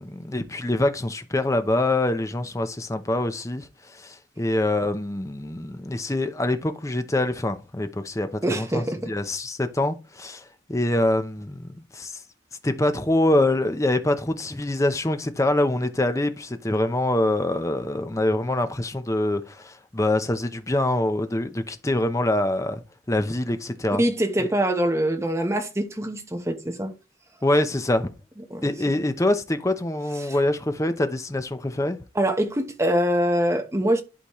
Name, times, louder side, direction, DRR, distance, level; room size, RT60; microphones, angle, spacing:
voice 1, 0.0-3.7 3.9-10.4 10.7-12.2 12.6-22.8 23.1-24.0 24.4-24.5 27.4-28.1 28.6-32.0, left 1 dB, 15° left, 0.7 m, -25 dB
voice 2, 8.4-9.1 24.0-26.9 28.5-28.7 30.2-30.4 32.1-34.0, right 1 dB, 15° right, 1.0 m, -24 dB
11.5 x 4.1 x 3.1 m
head